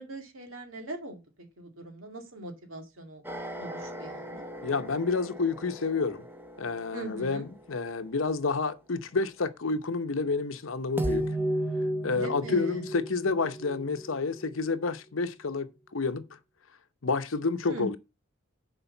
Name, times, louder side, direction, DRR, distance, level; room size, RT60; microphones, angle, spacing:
voice 1, 0.0-3.2 3.6-4.5 6.9-7.5 12.1-12.8 17.7-17.9, right 1 dB, 80° right, 2.1 m, -40 dB
sound 1, 3.2-7.5 11.0-14.9, right 1 dB, 10° right, 0.8 m, -35 dB
voice 2, 4.6-6.3 6.6-11.3 12.0-16.4 17.0-18.0, left 4 dB, 75° left, 0.8 m, -29 dB
7.1 x 4.8 x 6.5 m
head